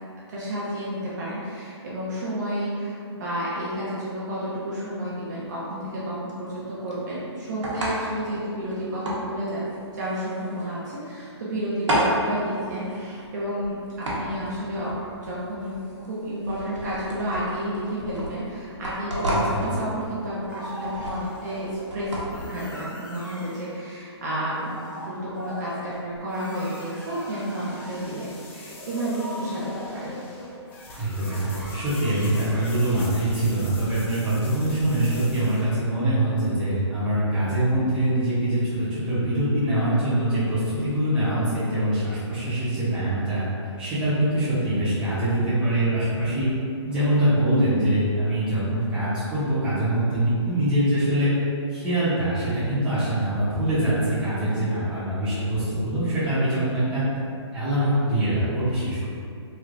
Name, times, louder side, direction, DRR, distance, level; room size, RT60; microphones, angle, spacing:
voice 1, 0.3-9.6 9.9-30.2 54.3-54.7, equal, 40° right, -8 dB, 0.6 m, -31 dB
sound 1, 4.8-22.5, equal, 90° right, 0.9 m, -32 dB
voice 2, 19.3-19.6 31.0-43.5 43.8-46.5 46.8-51.3 51.7-57.0 57.5-59.0, right 1 dB, 5° right, -14 dB, 0.8 m, -24 dB
sound 2, 20.5-21.9 22.3-23.7 24.2-32.5, left 1 dB, 40° left, 0.8 m, -40 dB
sound 3, 25.8-35.7, left 2 dB, 25° left, 0.4 m, -45 dB
3.2 x 2.8 x 2.5 m, 2.4 s
hypercardioid pair, 160°, 15 cm